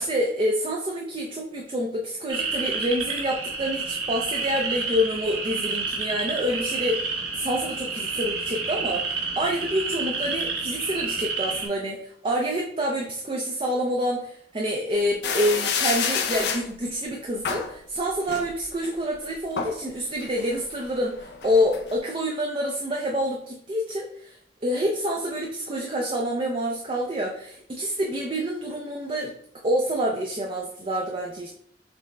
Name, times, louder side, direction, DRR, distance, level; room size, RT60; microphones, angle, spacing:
voice 1, 0.0-24.4 24.6-29.3 29.6-31.5, equal, 30° right, 0 dB, 0.4 m, -27 dB
sound 1, 2.3-11.7, right 4 dB, 60° right, 1.0 m, -30 dB
sound 2, 15.2-16.7 17.4-17.8 18.3-18.9 19.3-19.8 20.2-21.9, left 6 dB, 60° left, 0.4 m, -28 dB
5.8 x 2.0 x 3.2 m, 0.67 s
head